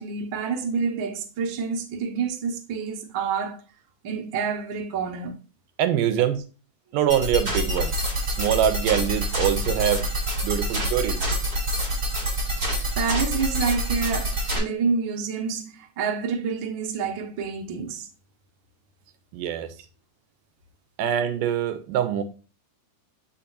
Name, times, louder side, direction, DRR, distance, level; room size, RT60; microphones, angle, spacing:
voice 1, 0.0-3.6 4.0-5.4 13.0-18.1, right 5 dB, 55° right, 1.4 m, -28 dB
voice 2, 5.8-6.4 6.9-8.0 8.3-10.1 10.4-11.2 19.3-19.7 21.0-22.2, right 10 dB, 85° right, 2.3 m, -24 dB
sound 1, 7.1-14.6, equal, 25° right, 3.6 m, -26 dB
7.0 x 5.7 x 2.6 m
omnidirectional pair, 3.9 m